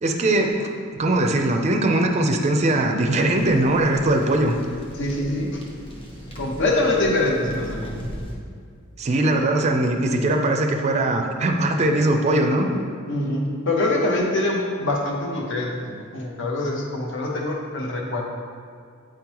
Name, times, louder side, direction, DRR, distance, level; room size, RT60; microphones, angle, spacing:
voice 1, 0.0-4.5 9.0-12.7, right 1 dB, 35° right, 3 dB, 0.4 m, -21 dB
sound 1, 3.3-8.3, equal, 25° left, 0.9 m, -37 dB
voice 2, 5.0-5.6 6.4-7.9 13.1-18.2, left 2 dB, 65° left, -1 dB, 0.9 m, -24 dB
8.6 x 3.7 x 3.0 m, 2.2 s
head